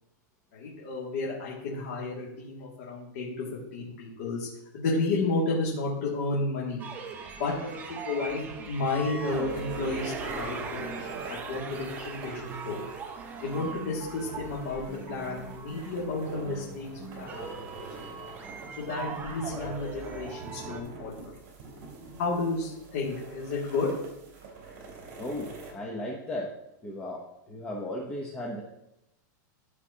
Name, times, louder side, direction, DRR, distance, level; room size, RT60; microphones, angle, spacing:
voice 1, 0.5-3.4 3.7-4.5 4.7-6.8 7.4-12.8 13.4-16.9 17.2-18.4 18.8-21.1 22.2-23.9, left 3 dB, 55° left, -6 dB, 2.4 m, -32 dB
sound 1, 6.8-20.8, right 5 dB, 15° right, 0.7 m, -40 dB
sound 2, 8.7-25.7, right 3 dB, 45° right, 3.0 m, -45 dB
voice 2, 25.2-26.5 26.8-27.2 27.5-28.6, left 1 dB, 10° left, -2 dB, 0.9 m, -35 dB
14.5 x 4.9 x 2.9 m, 0.85 s
supercardioid pair, 170°, 10 cm